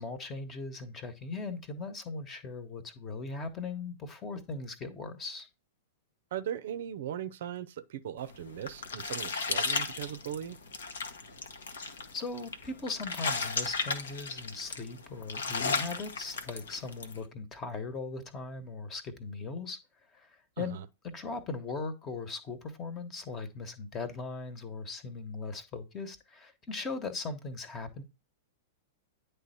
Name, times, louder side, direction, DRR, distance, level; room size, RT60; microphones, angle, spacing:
voice 1, 0.0-5.5 12.1-19.8 20.1-20.8 21.1-28.0, left 3 dB, 25° left, 1.2 m, -39 dB
voice 2, 6.3-10.6 20.6-20.9, right 10 dB, 60° right, 0.6 m, -38 dB
sound 1, 8.3-17.2, left 4 dB, 70° left, 1.0 m, -35 dB
9.6 x 3.4 x 4.3 m
figure-of-eight pair, 100°, 0 cm